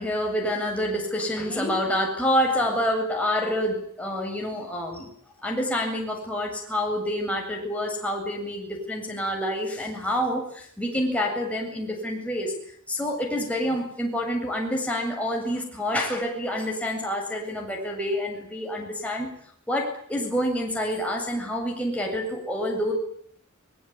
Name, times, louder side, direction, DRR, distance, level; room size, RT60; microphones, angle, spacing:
voice 1, 0.0-5.1 5.4-12.5 12.9-19.3 19.7-22.9, equal, 5° left, 0 dB, 7.9 m, -27 dB
24.0 x 22.5 x 9.6 m, 0.62 s
head